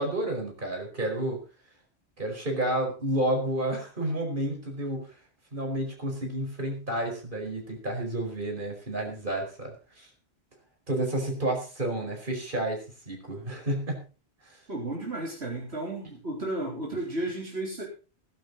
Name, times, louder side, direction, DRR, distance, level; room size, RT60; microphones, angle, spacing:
voice 1, 0.0-1.4 2.2-5.1 5.5-10.1 10.9-14.0 14.4-14.6, right 1 dB, 50° right, 2 dB, 5.2 m, -30 dB
voice 2, 14.7-17.8, right 2 dB, 75° right, -2 dB, 3.9 m, -33 dB
17.0 x 11.5 x 4.1 m, 0.34 s
omnidirectional pair, 1.1 m